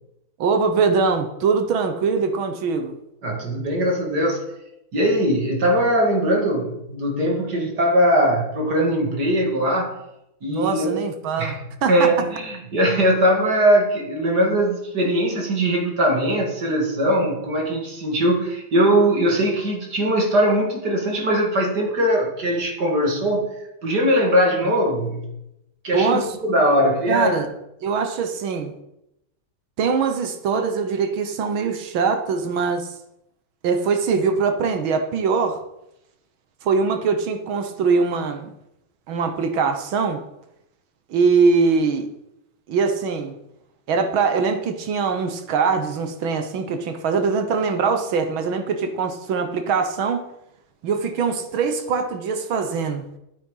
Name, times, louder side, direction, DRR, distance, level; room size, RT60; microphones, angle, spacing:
voice 1, 0.4-3.0 10.5-11.6 11.8-12.1 24.6-24.7 25.9-26.3 27.1-27.5 27.8-28.7 29.8-32.9 33.6-35.6 36.6-38.5 39.1-40.2 41.1-42.1 42.7-43.3 43.9-50.3 50.8-53.0, right 5 dB, 80° right, 7 dB, 1.9 m, -22 dB
voice 2, 3.2-4.4 4.9-9.9 10.4-11.1 11.4-23.5 23.8-25.3 25.8-27.5, equal, 55° right, 1 dB, 2.9 m, -20 dB
12.5 x 8.6 x 5.7 m, 0.85 s
omnidirectional pair, 2.2 m